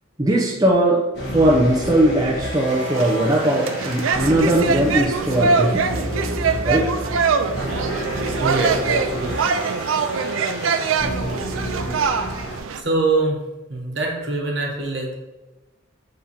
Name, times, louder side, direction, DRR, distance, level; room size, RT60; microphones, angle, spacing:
voice 1, 0.2-1.0 1.3-6.0 6.6-6.9, right 1 dB, 20° right, -3 dB, 0.6 m, -19 dB
sound 1, 1.1-12.6, equal, 55° left, 1.5 m, -30 dB
sound 2, 2.7-12.8, right 5 dB, 80° right, 0.4 m, -23 dB
voice 2, 8.4-9.6 12.5-13.4 13.7-15.1, right 2 dB, 60° right, -1 dB, 1.2 m, -24 dB
5.8 x 3.8 x 4.3 m, 1.1 s
head